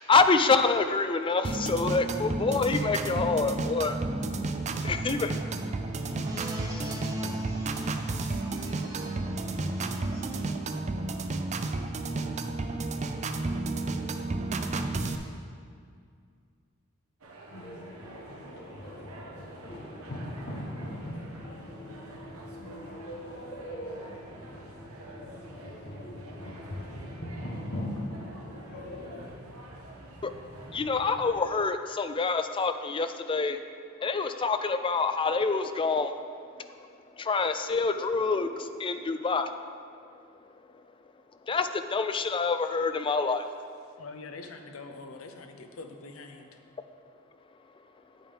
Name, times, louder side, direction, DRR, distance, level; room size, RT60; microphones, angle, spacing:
voice 1, 0.1-4.0 4.8-5.3 30.2-30.3 30.7-33.6 34.0-36.3 36.8-36.9 37.2-39.6 41.5-43.4, left 4 dB, 25° left, 9 dB, 0.4 m, -26 dB
sound 1, 1.4-15.2, right 2 dB, 35° right, 0.4 m, -32 dB
voice 2, 5.5-10.5, equal, 15° right, -4 dB, 1.6 m, -41 dB
sound 2, 17.2-31.3, right 1 dB, 80° right, 1.2 m, -48 dB
sound 3, 17.5-29.3, left 1 dB, 50° left, 1.1 m, -40 dB
voice 3, 44.0-46.6, left 3 dB, 70° left, 5 dB, 0.8 m, -44 dB
8.9 x 8.7 x 3.4 m, 2.2 s
head